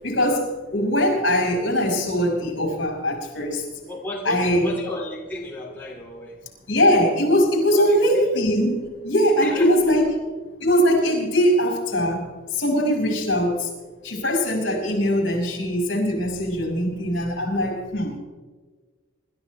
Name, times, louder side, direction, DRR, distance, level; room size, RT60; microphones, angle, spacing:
voice 1, 0.0-3.6 4.3-4.7 6.7-10.1 10.6-13.7 14.0-18.1, equal, 60° left, 0 dB, 5.7 m, -21 dB
voice 2, 3.8-6.4 7.7-8.4 9.4-9.7, left 1 dB, 10° left, -4 dB, 2.3 m, -33 dB
27.5 x 13.0 x 3.3 m, 1.4 s
head